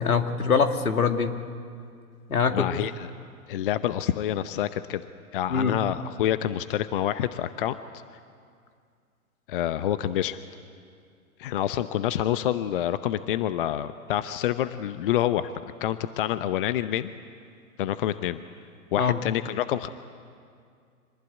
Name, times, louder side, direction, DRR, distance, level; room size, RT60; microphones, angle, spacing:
voice 1, 0.0-1.4 2.3-2.7 5.5-5.8 19.0-19.2, left 5 dB, 75° left, 7 dB, 2.2 m, -23 dB
voice 2, 2.5-3.1 3.5-5.0 5.3-7.8 9.5-10.4 11.4-15.5 15.8-17.1 17.8-18.4 18.9-19.9, left 11 dB, 40° left, 13 dB, 0.7 m, -27 dB
25.0 x 19.5 x 9.7 m, 2.3 s
figure-of-eight pair, 120°, 44 cm